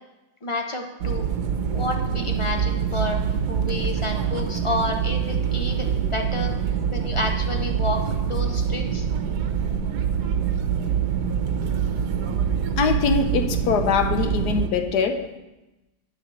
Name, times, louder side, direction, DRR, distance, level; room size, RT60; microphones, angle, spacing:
voice 1, 0.4-1.3 1.7-3.2 3.5-6.5 6.9-8.0 8.3-9.0, left 2 dB, 40° left, 3 dB, 0.4 m, -30 dB
sound 1, 1.0-14.7, right 7 dB, 85° right, 1.3 m, -25 dB
voice 2, 12.8-15.4, left 6 dB, 80° left, 7 dB, 1.4 m, -23 dB
7.0 x 5.9 x 7.6 m, 1.0 s
omnidirectional pair, 1.7 m